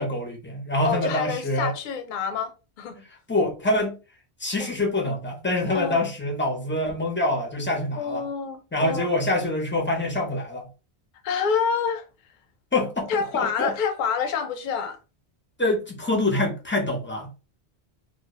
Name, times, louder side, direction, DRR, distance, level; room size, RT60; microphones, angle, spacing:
voice 1, 0.0-1.7 3.3-4.0 4.4-8.3 8.7-10.7 12.7-13.7 15.6-17.4, left 1 dB, 20° left, 0.3 m, -25 dB
voice 2, 0.8-3.0 4.6-4.7 5.7-6.0 8.0-9.1 11.2-12.1 13.1-15.0, left 6 dB, 60° left, 0.6 m, -27 dB
2.1 x 2.1 x 2.8 m
omnidirectional pair, 1.1 m